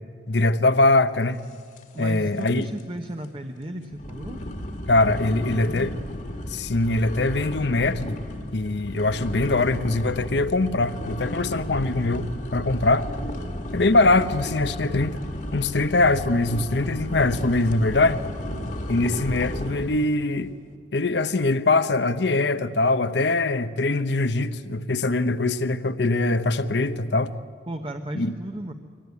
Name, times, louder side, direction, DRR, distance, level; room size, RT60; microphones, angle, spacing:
voice 1, 0.3-1.4 2.0-2.7 4.9-5.9 6.5-8.2 8.5-13.1 13.7-15.2 15.5-18.2 18.9-20.5 20.9-27.3 28.1-28.3, left 2 dB, 70° left, 0.9 m, -22 dB
sound 1, 1.8-2.2 2.4-2.8 3.2-3.3 3.9-20.1, left 1 dB, 45° left, 1.7 m, -33 dB
voice 2, 1.9-4.4 5.1-5.9 27.7-28.7, right 1 dB, 30° right, 0.8 m, -34 dB
23.5 x 18.0 x 9.5 m
head